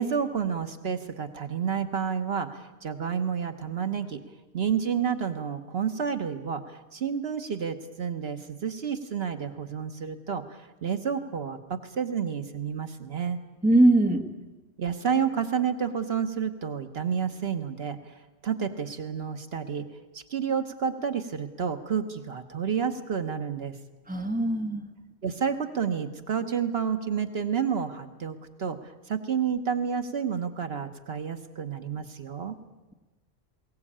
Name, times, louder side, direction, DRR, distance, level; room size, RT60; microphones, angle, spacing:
voice 1, 0.0-4.2 4.5-13.4 14.8-19.9 20.1-23.8 25.2-32.5, right 7 dB, 70° right, 8 dB, 1.3 m, -30 dB
voice 2, 13.6-14.2 24.1-24.8, right 1 dB, 10° right, 4 dB, 1.5 m, -21 dB
21.0 x 18.0 x 8.7 m, 1.2 s
omnidirectional pair, 1.1 m